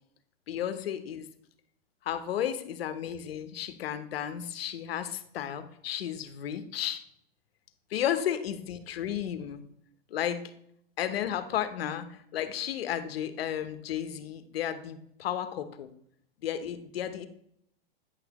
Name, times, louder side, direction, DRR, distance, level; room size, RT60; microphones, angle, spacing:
voice 1, 0.5-1.3 2.0-7.0 7.9-9.6 10.1-10.5 11.0-15.9 16.4-17.3, left 10 dB, 85° left, 10 dB, 1.0 m, -33 dB
9.5 x 6.0 x 3.0 m, 0.71 s
supercardioid pair, 145°, 29 cm